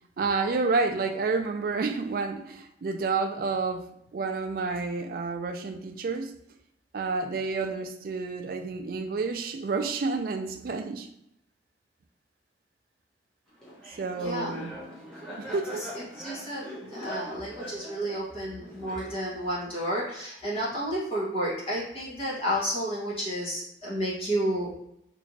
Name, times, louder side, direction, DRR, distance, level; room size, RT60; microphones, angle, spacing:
voice 1, 0.2-6.3 6.9-11.1 14.0-14.8 15.4-15.9, right 4 dB, 50° right, 6 dB, 0.3 m, -30 dB
Laughter, 13.6-19.5, equal, 5° left, 0.9 m, -42 dB
voice 2, 14.2-14.5 16.2-24.7, equal, 30° left, -7 dB, 1.2 m, -31 dB
3.3 x 3.0 x 2.7 m, 0.79 s
head